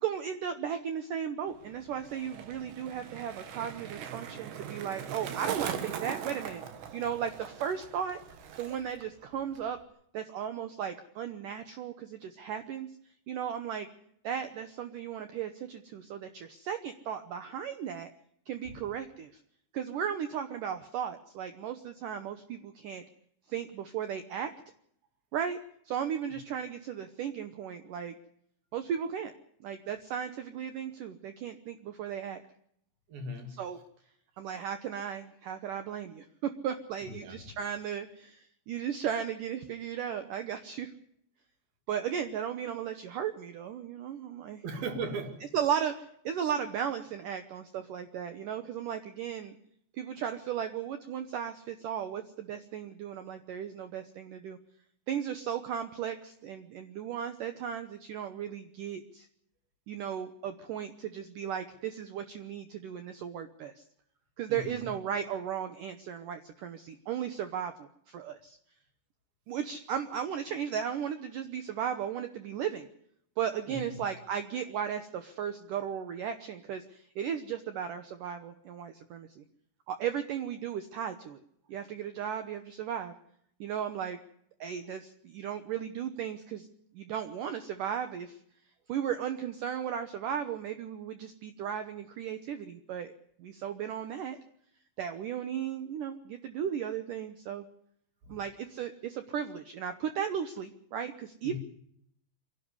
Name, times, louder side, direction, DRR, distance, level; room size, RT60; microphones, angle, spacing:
voice 1, 0.0-6.6 6.9-8.2 8.6-9.8 10.1-12.9 13.3-13.9 14.2-18.1 18.5-19.3 19.7-23.0 23.5-24.5 25.3-25.6 25.9-28.1 28.7-29.3 29.6-32.4 33.6-33.8 34.4-40.9 41.9-44.6 45.5-49.6 49.9-54.6 55.1-59.3 59.9-63.7 64.4-68.6 69.5-72.9 73.4-79.4 79.9-81.4 81.7-83.1 83.6-84.2 84.6-86.7 86.9-88.4 88.9-93.1 93.4-94.4 95.0-97.7 98.3-101.6, right 8 dB, 90° right, 9 dB, 1.8 m, -35 dB
Skateboard, 1.5-9.1 9.3-9.8, right 8 dB, 75° right, 3.9 m, -41 dB
voice 2, 33.1-33.6 37.0-37.4 44.6-45.4 64.5-64.9 73.7-74.0 98.2-98.4 101.4-101.6, right 2 dB, 55° right, 6 dB, 4.0 m, -38 dB
25.5 x 12.0 x 9.6 m, 0.70 s
omnidirectional pair, 5.2 m